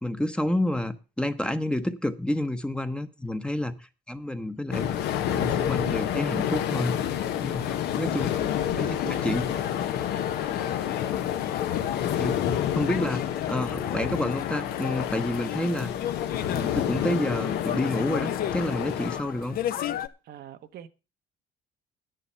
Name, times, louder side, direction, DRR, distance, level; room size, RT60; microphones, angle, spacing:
voice 1, 0.0-5.0 5.3-7.0 7.4-8.3 8.8-8.9 9.2-9.4 12.2-15.9 16.4-19.6, left 1 dB, 5° left, 0.9 m, -29 dB
sound 1, 4.7-19.2, left 10 dB, 80° left, 1.1 m, -29 dB
sound 2, 7.2-20.1, left 10 dB, 60° left, 0.9 m, -35 dB
voice 2, 8.7-9.6 11.6-11.8 20.2-20.9, right 10 dB, 70° right, 1.0 m, -43 dB
10.0 x 9.5 x 5.5 m
cardioid pair, 110°, 17 cm